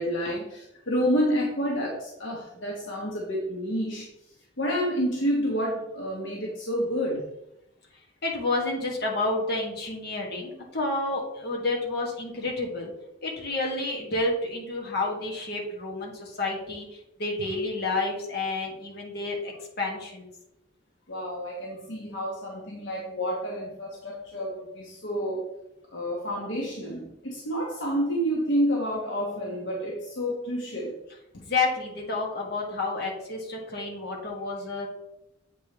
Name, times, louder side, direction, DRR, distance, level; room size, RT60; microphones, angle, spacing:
voice 1, 0.0-4.1 4.6-7.2 21.1-25.4 25.9-31.0, equal, 75° left, -3 dB, 1.2 m, -29 dB
voice 2, 8.2-12.9 13.2-20.3 31.3-34.9, left 2 dB, 55° left, -1 dB, 1.7 m, -30 dB
8.0 x 4.9 x 3.0 m, 0.86 s
head